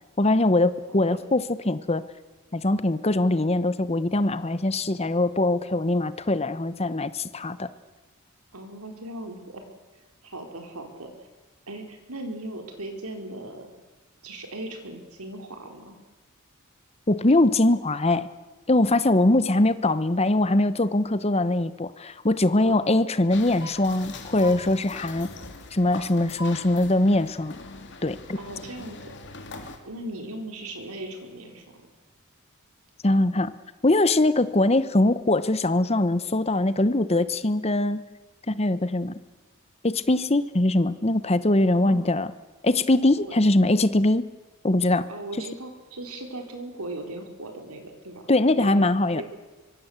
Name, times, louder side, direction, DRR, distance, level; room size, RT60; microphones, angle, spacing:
voice 1, 0.2-2.0 2.5-7.7 17.1-18.3 18.7-25.3 25.7-27.5 28.0-28.4 33.0-33.5 33.8-38.0 38.5-39.2 39.8-42.3 42.6-44.3 44.6-45.0 48.3-49.2, left 2 dB, 30° left, 14 dB, 1.0 m, -22 dB
voice 2, 0.9-1.2 8.5-9.6 10.2-11.3 11.7-13.7 14.2-16.0 22.7-22.8 28.4-29.2 29.8-31.9 41.7-42.1 43.2-43.3 45.1-48.2 48.6-48.8 49.1-49.2, right 1 dB, 80° right, 4 dB, 4.7 m, -38 dB
sound 1, 23.3-29.8, left 3 dB, 50° left, 2.9 m, -41 dB
24.5 x 23.5 x 8.1 m, 1.2 s
head